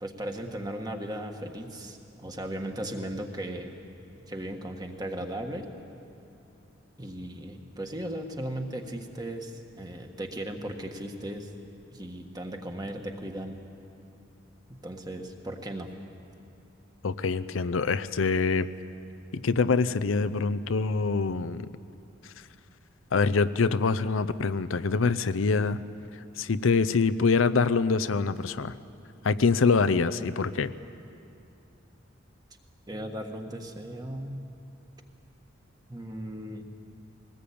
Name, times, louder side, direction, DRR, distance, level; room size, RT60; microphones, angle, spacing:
voice 1, 0.0-3.7 4.3-5.7 7.0-11.5 11.9-13.6 14.8-15.9 32.9-34.4 35.9-36.6, right 1 dB, 20° right, 4 dB, 1.5 m, -36 dB
voice 2, 17.0-18.7 19.3-21.7 23.1-25.8 26.4-28.7 29.2-30.7, left 4 dB, 85° left, 13 dB, 0.6 m, -25 dB
22.5 x 19.0 x 8.6 m, 2.7 s
head